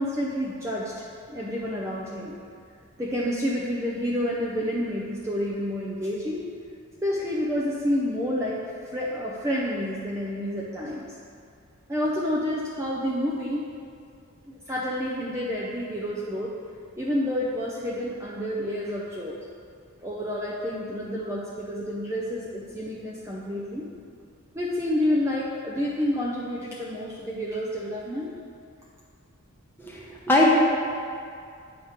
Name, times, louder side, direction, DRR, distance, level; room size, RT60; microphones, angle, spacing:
voice 1, 0.0-2.3 3.0-6.4 7.0-11.2 11.9-13.7 14.5-16.5 17.0-19.4 20.0-23.9 24.5-28.3, left 1 dB, 10° right, -6 dB, 0.5 m, -29 dB
voice 2, 29.9-30.5, left 1 dB, 10° left, -4 dB, 0.9 m, -20 dB
8.7 x 3.2 x 5.7 m, 2.4 s
head